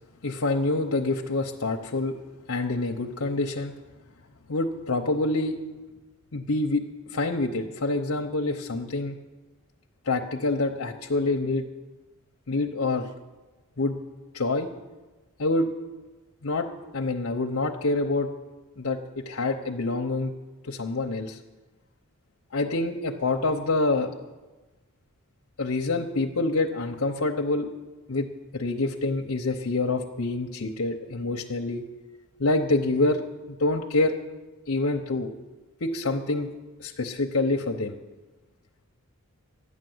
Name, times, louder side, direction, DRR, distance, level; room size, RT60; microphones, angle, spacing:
voice 1, 0.2-2.2 2.5-3.7 4.5-5.6 6.3-6.9 7.1-9.1 10.1-11.6 12.5-13.1 13.8-14.0 14.3-14.7 15.4-15.7 16.4-16.7 16.9-18.3 18.8-20.3 20.6-21.4 22.5-24.1 25.6-27.7 28.1-28.3 28.5-31.8 32.4-33.2 33.5-34.1 34.7-35.3 35.8-36.5 36.8-37.9, left 2 dB, 70° left, 1 dB, 0.8 m, -26 dB
12.0 x 9.7 x 7.9 m, 1.2 s
head